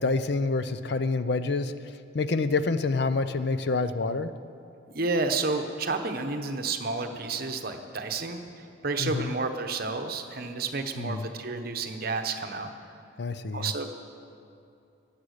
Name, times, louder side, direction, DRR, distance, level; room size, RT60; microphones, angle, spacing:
voice 1, 0.0-1.7 2.1-4.3 9.0-9.3 11.0-11.3 13.2-13.7, left 3 dB, 55° left, 11 dB, 0.5 m, -27 dB
voice 2, 4.9-12.7 13.5-14.0, right 3 dB, 50° right, 6 dB, 0.9 m, -31 dB
15.0 x 9.8 x 6.5 m, 2.6 s
head